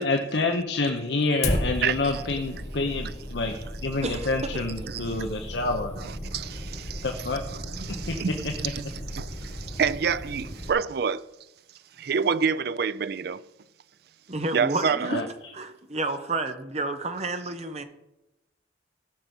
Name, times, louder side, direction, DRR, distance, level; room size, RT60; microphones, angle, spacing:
voice 1, 0.0-6.1 7.0-7.5 8.1-8.5 15.0-15.5, left 3 dB, 65° left, 0.9 m, -28 dB
Fire, 1.4-10.7, left 1 dB, 35° left, 1.5 m, -34 dB
voice 2, 1.8-2.2 4.9-5.2 6.3-7.0 7.5-8.8 9.1-11.3 12.0-13.4 14.5-15.1, right 6 dB, 55° right, 0.4 m, -28 dB
voice 3, 14.3-15.2 15.5-17.8, right 2 dB, 35° right, 1.0 m, -30 dB
16.0 x 6.0 x 5.3 m
head